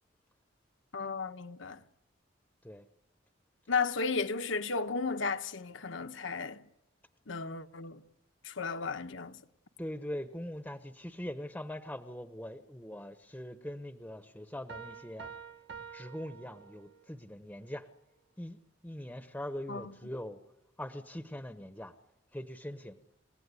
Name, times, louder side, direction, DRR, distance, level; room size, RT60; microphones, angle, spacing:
voice 1, 0.9-1.8 3.7-6.6 7.3-8.0 8.4-9.4 19.7-19.9, left 4 dB, 75° left, 1.2 m, -34 dB
voice 2, 9.8-15.3 15.9-17.9 18.4-20.4 20.8-21.9 22.3-23.0, left 1 dB, 10° left, 1.0 m, -42 dB
sound 1, 14.7-17.2, right 6 dB, 65° right, 1.4 m, -48 dB
28.5 x 17.0 x 9.7 m
head